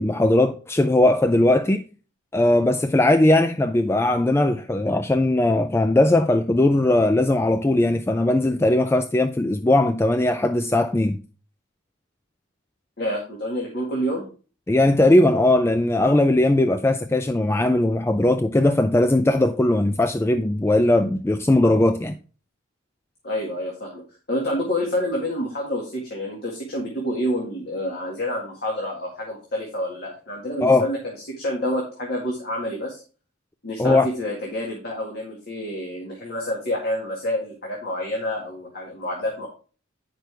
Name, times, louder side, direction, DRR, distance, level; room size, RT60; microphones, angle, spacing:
voice 1, 0.0-1.8 2.3-11.2 14.7-22.1 30.6-30.9 33.8-34.1, left 1 dB, 15° left, 0.3 m, -19 dB
voice 2, 13.0-14.2 23.2-24.0 24.3-31.0 31.4-33.0 33.6-39.5, left 1 dB, 55° left, 2.0 m, -28 dB
9.2 x 6.0 x 3.4 m
head